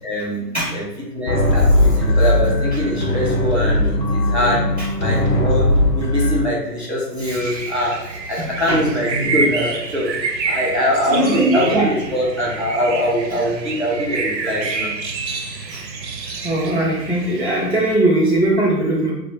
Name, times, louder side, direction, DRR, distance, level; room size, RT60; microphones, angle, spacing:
voice 1, 0.0-0.8 1.1-4.6 5.0-5.7 5.9-8.0 8.3-10.1 10.4-14.9, equal, 45° right, -5 dB, 0.4 m, -22 dB
sound 1, 1.3-6.5, left 1 dB, 85° left, 0.8 m, -18 dB
voice 2, 7.2-7.6 8.4-8.8 11.1-11.9 15.7-15.8 16.4-19.1, right 1 dB, 45° left, -5 dB, 0.4 m, -20 dB
sound 2, 7.3-18.0, right 4 dB, 85° right, 0.6 m, -28 dB
2.5 x 2.1 x 2.7 m, 0.90 s
hypercardioid pair, 180°, 50 cm